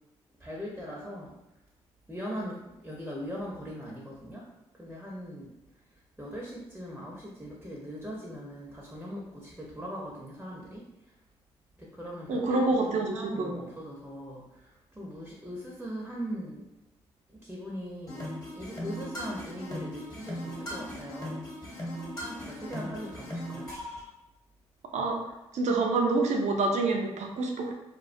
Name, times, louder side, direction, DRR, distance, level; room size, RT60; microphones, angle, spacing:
voice 1, 0.4-1.3 2.1-4.5 4.7-5.5 6.2-10.9 11.8-16.7 17.3-18.3 18.5-21.4 22.5-23.7, equal, 10° right, -3 dB, 0.7 m, -40 dB
voice 2, 12.3-13.5 24.9-25.2 25.5-27.7, right 3 dB, 60° right, 1 dB, 0.5 m, -27 dB
sound 1, 18.1-24.0, equal, 25° left, 1.1 m, -38 dB
2.3 x 2.1 x 2.5 m, 0.93 s
hypercardioid pair, 40°, 14 cm